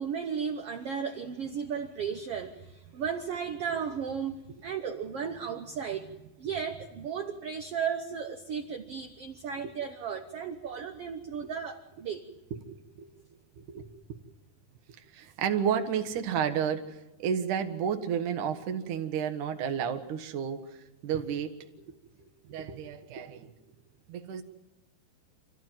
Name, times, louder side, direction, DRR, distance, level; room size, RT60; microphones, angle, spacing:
voice 1, 0.0-12.3, right 7 dB, 75° right, 5 dB, 1.3 m, -35 dB
voice 2, 13.6-14.2 15.1-21.7 22.2-23.5 24.1-24.4, right 8 dB, 60° right, 7 dB, 2.7 m, -32 dB
28.0 x 14.0 x 9.1 m, 1.0 s
omnidirectional pair, 4.3 m